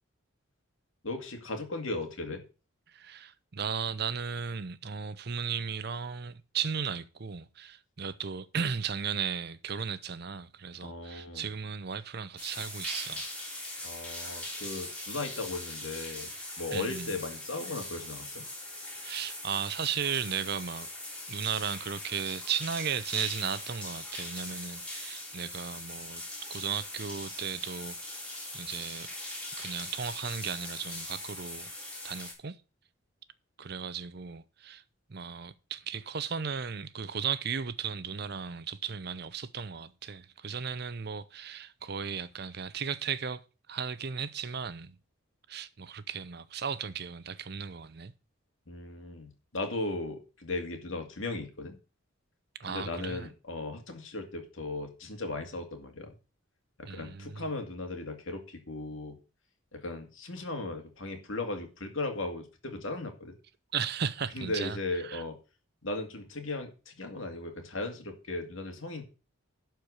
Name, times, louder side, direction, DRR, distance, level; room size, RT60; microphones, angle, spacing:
voice 1, 1.0-2.4 10.8-11.5 13.8-16.3 16.6-18.5 48.7-51.8 52.6-56.1 56.8-59.2 59.7-63.3 64.3-65.4 65.8-69.0, left 2 dB, 70° left, 2.3 m, -37 dB
voice 2, 2.9-13.2 16.7-17.1 18.9-20.9 21.3-26.2 26.5-28.3 28.5-29.1 29.6-31.7 32.0-32.6 33.6-34.8 35.1-43.4 43.7-45.0 45.5-48.1 52.6-53.3 56.9-57.5 63.7-64.8 65.0-65.2, right 7 dB, 50° right, 0.6 m, -35 dB
sound 1, 12.4-32.3, left 1 dB, 5° left, 3.3 m, -41 dB
12.0 x 4.6 x 6.5 m
head